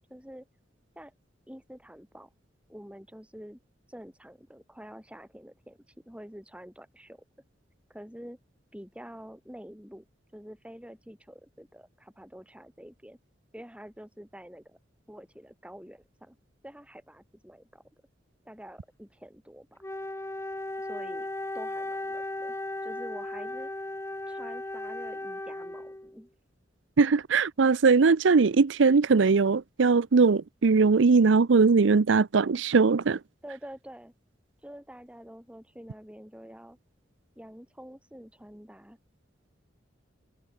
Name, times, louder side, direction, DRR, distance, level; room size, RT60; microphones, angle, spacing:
voice 1, 0.1-0.5 1.0-1.1 1.5-2.3 2.7-3.6 3.9-5.8 6.1-7.2 7.9-8.4 8.7-10.0 10.3-13.2 13.5-14.8 15.1-16.4 16.6-17.8 18.4-19.8 20.8-21.3 21.5-22.5 22.8-23.7 24.3-26.3 33.4-34.1 34.6-36.8 37.4-39.0, equal, 5° right, 7.6 m, -47 dB
Wind instrument woodwind instrument, 19.8-26.2, left 1 dB, 15° left, 1.3 m, -36 dB
voice 2, 27.0-33.2, right 4 dB, 80° right, 0.6 m, -21 dB
head